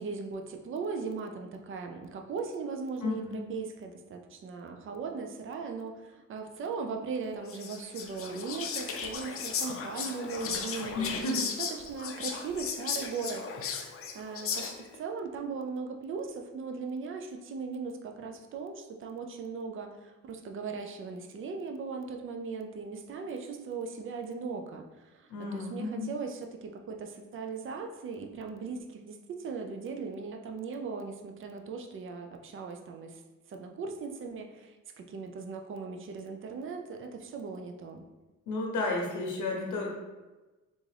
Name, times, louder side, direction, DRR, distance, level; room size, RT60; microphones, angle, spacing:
voice 1, 0.0-13.5 14.1-33.2 33.5-38.1, right 4 dB, 45° right, 4 dB, 0.5 m, -38 dB
voice 2, 3.0-3.4 10.9-11.4 25.3-26.1 38.5-39.9, left 2 dB, 80° left, 0 dB, 0.8 m, -32 dB
Whispering, 7.5-15.0, left 6 dB, 50° left, 0.5 m, -36 dB
3.5 x 2.5 x 3.3 m, 1.1 s
cardioid pair, 90°, 30 cm